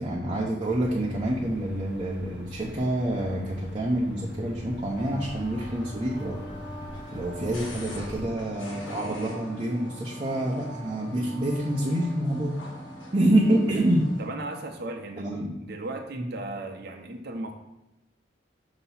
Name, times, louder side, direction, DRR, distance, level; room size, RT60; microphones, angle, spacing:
voice 1, 0.0-6.4 7.1-12.6 13.1-14.1 15.2-15.5 16.1-16.3, right 1 dB, 25° right, -4 dB, 0.8 m, -27 dB
sound 1, 0.6-8.3, left 1 dB, 5° right, 1.3 m, -40 dB
sound 2, 5.0-14.3, equal, 85° left, 1.5 m, -41 dB
voice 2, 14.2-15.3 15.6-17.5, right 2 dB, 60° right, 2 dB, 0.8 m, -36 dB
6.8 x 3.0 x 5.7 m, 0.94 s
head